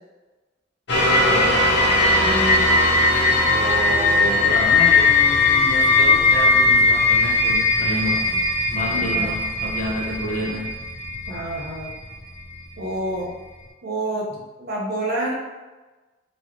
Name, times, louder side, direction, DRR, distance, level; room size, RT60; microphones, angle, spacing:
sound 1, 0.9-12.0 12.5-12.6, left 3 dB, 65° left, 0.8 m, -18 dB
voice 1, 1.2-1.6 4.2-8.2 8.7-10.7, left 1 dB, 45° left, -4 dB, 1.1 m, -29 dB
voice 2, 2.2-2.7 3.5-4.4 8.3-8.4 9.0-9.3 11.3-11.9 12.8-13.3 13.8-15.3, right 1 dB, 55° right, -3 dB, 1.0 m, -28 dB
4.6 x 3.0 x 3.0 m, 1.2 s
head